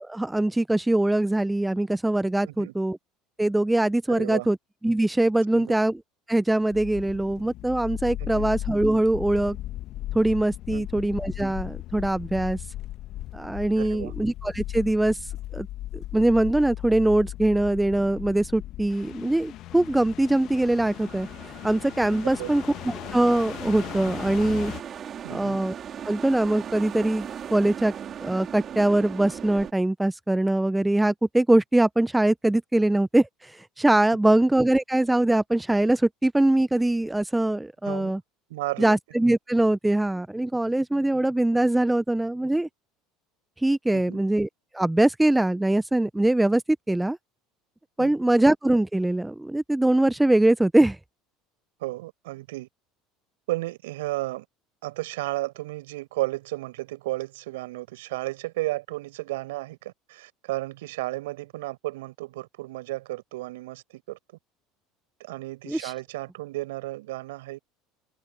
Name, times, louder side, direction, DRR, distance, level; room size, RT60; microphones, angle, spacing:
voice 1, 0.0-3.0 3.4-4.6 4.8-6.0 6.3-9.6 10.1-12.6 13.3-15.2 15.5-15.7 15.9-21.3 21.6-24.7 25.3-25.7 26.0-27.9 28.2-38.2 38.8-42.7 43.6-44.5 44.7-46.6 46.9-47.2 48.0-51.0 65.7-65.9, right 1 dB, 10° right, 0.8 m, -22 dB
voice 2, 4.1-4.5 5.5-5.7 8.2-8.5 10.7-11.0 13.8-14.1 22.4-22.5 25.2-25.6 37.9-38.1 38.5-39.0 43.9-44.2 48.0-48.3 51.8-52.7 53.5-54.4 54.8-64.2 65.2-67.6, right 19 dB, 75° right, 5.6 m, -33 dB
sound 1, 6.6-24.8, left 14 dB, 55° left, 1.6 m, -37 dB
sound 2, 20.5-29.7, right 8 dB, 40° right, 5.0 m, -39 dB
open air
hypercardioid pair, 70°, 0 cm